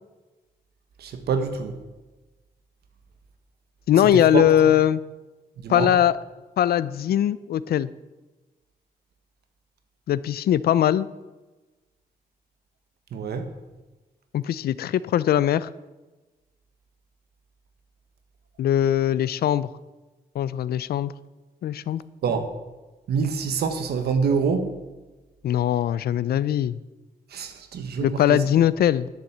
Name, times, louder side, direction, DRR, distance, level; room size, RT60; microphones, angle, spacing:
voice 1, 1.0-1.7 4.1-4.4 5.6-5.9 13.1-13.5 22.2-22.4 23.1-24.7 27.3-28.4, right 5 dB, 85° right, 8 dB, 1.2 m, -26 dB
voice 2, 3.9-5.0 5.7-6.2 6.6-7.9 10.1-11.1 14.3-15.7 18.6-19.7 20.3-21.1 21.6-22.0 25.4-26.8 28.0-29.1, left 11 dB, 75° left, 17 dB, 0.5 m, -21 dB
10.5 x 7.2 x 8.0 m, 1.2 s
wide cardioid pair, 135°, 16 cm